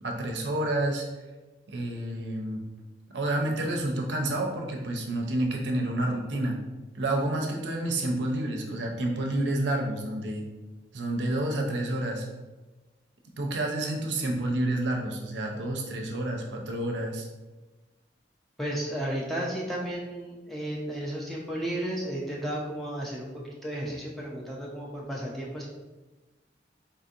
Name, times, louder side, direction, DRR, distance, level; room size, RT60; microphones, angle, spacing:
voice 1, 0.0-1.0 1.7-2.6 3.1-6.6 6.9-10.4 10.9-12.3 13.4-17.3, right 1 dB, 90° right, 1 dB, 0.6 m, -29 dB
voice 2, 18.6-23.3 23.6-25.7, right 1 dB, ahead, -4 dB, 0.5 m, -33 dB
4.0 x 2.7 x 2.5 m, 1.2 s
head